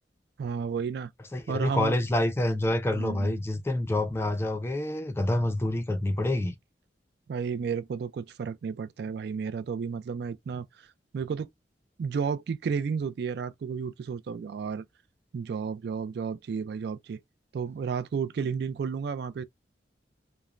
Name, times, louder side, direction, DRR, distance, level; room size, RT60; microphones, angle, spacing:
voice 1, 0.4-1.1 1.5-2.0 2.9-3.3 7.3-10.9 11.1-11.5 12.0-14.8 15.3-17.2 17.5-19.4, right 6 dB, 60° right, 0.3 m, -32 dB
voice 2, 1.3-6.6, left 1 dB, 15° left, 0.4 m, -27 dB
3.1 x 2.1 x 2.4 m
head